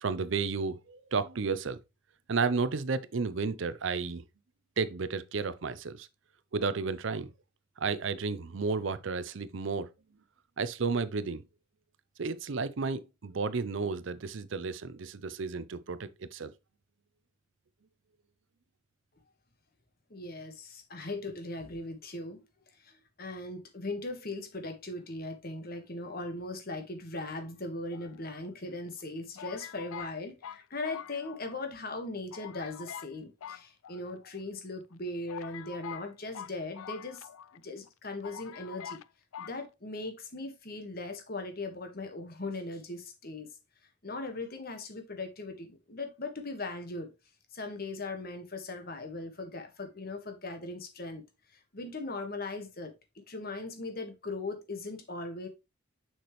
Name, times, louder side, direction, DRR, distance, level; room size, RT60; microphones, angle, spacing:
voice 1, 0.0-1.8 2.3-4.2 4.8-6.1 6.5-7.3 7.8-9.9 10.6-11.4 12.2-16.5, right 4 dB, 65° right, 0.6 m, -32 dB
voice 2, 20.1-22.4 22.8-39.0 39.4-43.5 44.0-47.1 47.5-51.2 51.5-52.9 53.3-55.5, left 2 dB, 50° left, 1.5 m, -39 dB
sound 1, 27.9-28.7 29.4-31.7 31.9-32.0 32.3-33.1 33.4-34.4 34.9-35.0 35.3-37.6 37.9-38.0 38.2-39.1 39.3-39.6, left 9 dB, 90° left, 0.4 m, -45 dB
6.7 x 6.0 x 3.1 m
head